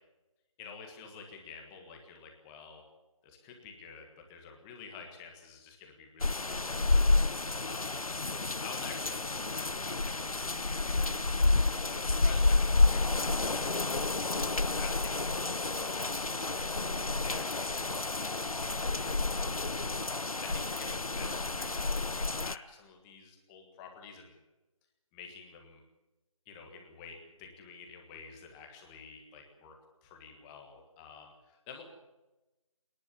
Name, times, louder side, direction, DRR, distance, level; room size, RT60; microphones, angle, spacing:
voice 1, 0.6-2.8 3.2-8.1 8.6-24.4 25.1-25.8 26.4-29.7 30.0-31.8, left 6 dB, 10° left, 3 dB, 1.5 m, -49 dB
sound 1, 6.2-22.6, left 3 dB, 85° left, 0.8 m, -30 dB
26.5 x 11.0 x 9.8 m, 1.1 s
figure-of-eight pair, 165°, 18 cm